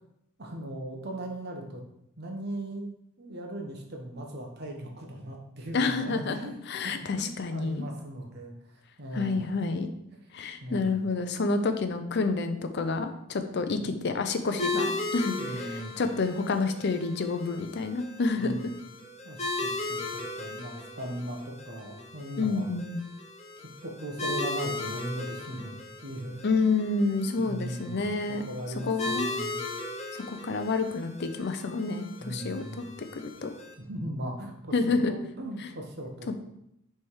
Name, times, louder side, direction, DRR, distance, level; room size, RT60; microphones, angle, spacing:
voice 1, 0.4-1.8 2.2-2.9 3.2-8.5 9.0-9.5 10.6-11.0 13.7-13.9 15.4-15.9 18.4-18.7 19.2-22.7 23.6-25.8 26.0-26.8 27.4-28.2 28.4-29.6 32.2-32.9 33.8-36.4, right 1 dB, 50° right, 2 dB, 1.1 m, -38 dB
voice 2, 5.7-7.9 9.1-9.9 10.3-18.6 22.4-23.0 26.4-28.4 28.8-29.3 30.1-32.8 33.1-33.5 34.7-35.1, left 3 dB, 50° left, 8 dB, 0.5 m, -29 dB
sound 1, 14.6-33.7, left 2 dB, 30° left, 1.0 m, -37 dB
6.2 x 3.4 x 4.6 m, 0.79 s
head